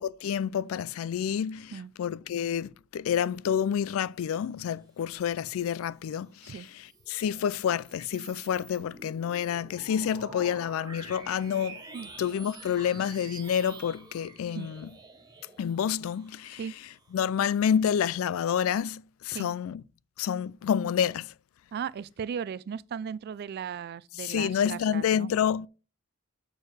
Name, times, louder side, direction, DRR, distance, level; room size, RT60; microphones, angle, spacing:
voice 1, 0.0-1.7 2.0-11.8 12.2-14.9 15.6-16.6 17.1-19.8 20.2-21.3 24.2-25.7, left 8 dB, 85° left, 0.3 m, -29 dB
sound 1, 6.4-17.3, right 3 dB, 20° right, 1.6 m, -48 dB
voice 2, 21.7-25.3, right 7 dB, 50° right, 0.3 m, -37 dB
6.2 x 4.6 x 4.8 m
head